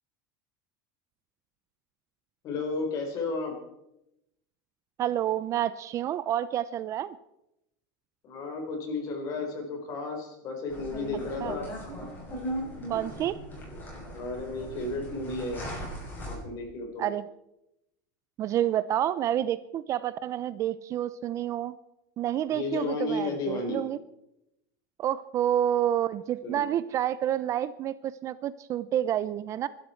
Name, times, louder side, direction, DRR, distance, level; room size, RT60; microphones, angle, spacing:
voice 1, 2.4-3.6 8.2-11.7 14.1-15.6 16.2-17.1 22.5-23.8 26.4-26.6, left 3 dB, 40° left, 3 dB, 4.4 m, -33 dB
voice 2, 5.0-7.2 11.4-11.6 12.9-13.4 17.0-17.2 18.4-21.8 22.2-24.0 25.0-29.7, right 11 dB, 30° right, 16 dB, 0.5 m, -29 dB
sound 1, 10.7-16.3, equal, 20° left, 6.5 m, -38 dB
24.0 x 12.5 x 4.5 m, 0.86 s
supercardioid pair, 150°, 10 cm